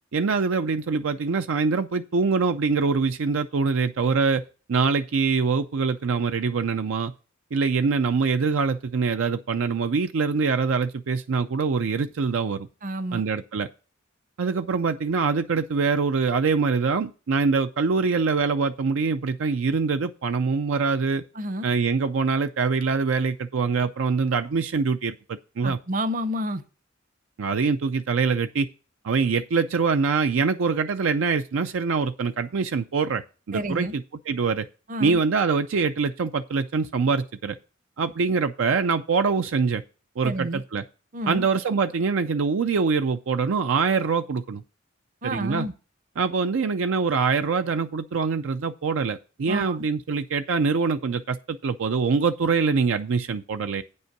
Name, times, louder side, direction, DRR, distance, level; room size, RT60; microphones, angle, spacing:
voice 1, 0.1-4.4 4.7-7.1 7.5-12.7 13.1-13.7 14.4-21.2 21.6-25.8 27.4-28.7 29.0-34.7 35.0-37.6 38.0-39.8 40.2-40.8 41.3-44.6 45.2-45.7 46.2-53.8, right 5 dB, 70° right, 0.5 m, -24 dB
voice 2, 12.8-13.2 21.3-21.7 25.6-26.6 33.5-33.9 34.9-35.2 40.2-40.6 41.1-41.5 45.2-45.7 49.5-49.8, equal, 40° right, 0.8 m, -29 dB
9.0 x 5.4 x 5.9 m
head